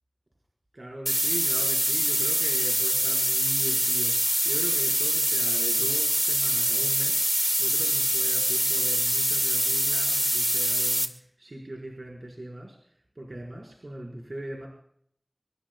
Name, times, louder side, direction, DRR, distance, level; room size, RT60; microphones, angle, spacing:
voice 1, 0.7-12.8 13.2-14.7, right 1 dB, 70° right, -1 dB, 5.1 m, -40 dB
sound 1, 1.1-11.1, equal, 10° right, 2.3 m, -24 dB
26.0 x 23.0 x 2.4 m, 0.65 s
wide cardioid pair, 40°, 0 cm